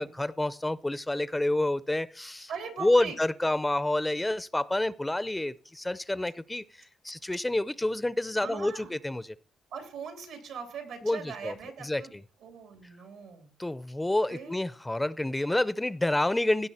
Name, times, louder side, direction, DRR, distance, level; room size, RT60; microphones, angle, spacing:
voice 1, 0.0-2.5 2.8-9.4 11.0-11.5 11.8-12.2 13.6-16.7, left 1 dB, 10° left, 17 dB, 0.5 m, -28 dB
voice 2, 2.5-3.2 8.4-8.9 9.7-12.1 12.4-13.5 14.3-14.6, right 6 dB, 85° right, 4 dB, 3.0 m, -40 dB
16.5 x 5.9 x 4.2 m, 0.41 s
cardioid pair, 90°, 0 cm